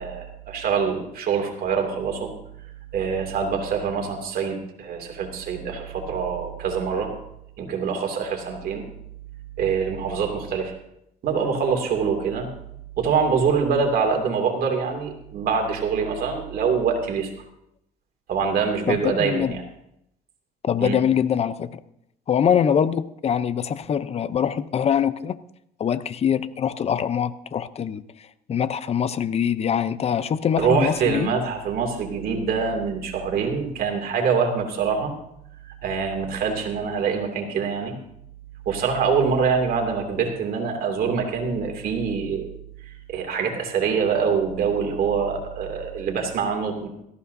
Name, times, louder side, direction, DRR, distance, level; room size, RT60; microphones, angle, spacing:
voice 1, 0.0-2.3 2.9-7.1 7.6-8.8 9.6-10.7 11.2-12.5 13.0-17.3 18.3-19.6 20.8-21.0 30.6-35.1 35.8-37.9 38.7-42.5 43.1-46.9, right 6 dB, 60° right, 2.6 m, -24 dB
voice 2, 18.9-19.6 20.6-21.8 22.3-25.4 25.8-28.0 28.5-31.3, left 8 dB, 40° left, 0.6 m, -23 dB
18.0 x 14.5 x 2.7 m
cardioid pair, 110°, 17 cm